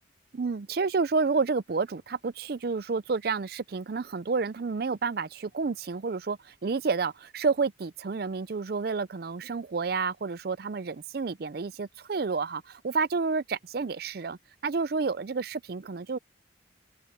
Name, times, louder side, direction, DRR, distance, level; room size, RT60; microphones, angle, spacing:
voice 1, 0.3-16.2, right 4 dB, 50° right, 0.5 m, -30 dB
head